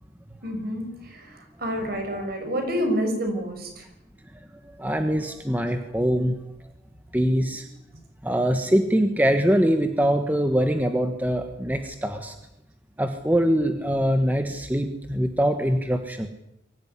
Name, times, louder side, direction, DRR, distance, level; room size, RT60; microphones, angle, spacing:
voice 1, 0.4-3.8, equal, 50° right, 5 dB, 6.4 m, -28 dB
voice 2, 4.8-6.3 7.1-7.6 8.2-12.3 13.0-16.3, equal, 10° right, 6 dB, 1.4 m, -23 dB
23.0 x 15.5 x 9.8 m, 0.85 s
head